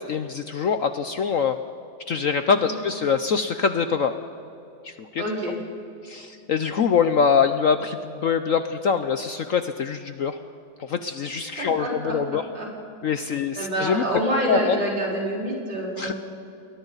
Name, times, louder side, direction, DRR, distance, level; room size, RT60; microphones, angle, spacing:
voice 1, 0.0-1.6 2.1-4.1 4.8-5.2 6.0-10.4 10.9-12.4 13.0-14.0 14.5-14.8 16.0-16.1, left 6 dB, 60° left, 9 dB, 0.9 m, -24 dB
voice 2, 5.2-5.6 11.6-12.7 13.2-16.1, right 1 dB, 70° right, -4 dB, 5.5 m, -27 dB
29.5 x 22.0 x 4.0 m, 2.7 s
omnidirectional pair, 2.0 m